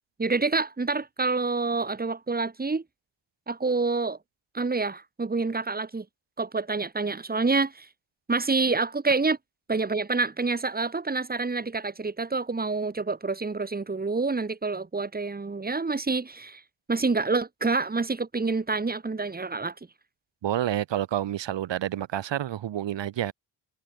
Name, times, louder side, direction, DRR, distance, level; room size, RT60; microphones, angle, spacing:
voice 1, 0.2-2.8 3.5-4.2 4.5-6.1 6.4-7.9 8.3-9.4 9.7-16.6 16.9-19.7, right 3 dB, 20° right, 1.8 m, -27 dB
voice 2, 20.4-23.3, right 11 dB, 80° right, 1.7 m, -29 dB
cardioid pair, 100°, 43 cm